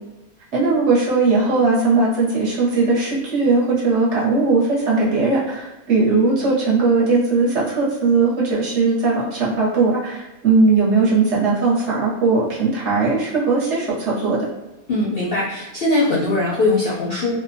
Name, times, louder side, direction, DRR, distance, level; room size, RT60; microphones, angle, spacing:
voice 1, 0.5-14.5, right 3 dB, 60° right, -5 dB, 0.9 m, -18 dB
voice 2, 14.9-17.3, left 2 dB, 60° left, -7 dB, 0.6 m, -20 dB
2.6 x 2.1 x 2.5 m, 1.0 s
omnidirectional pair, 1.5 m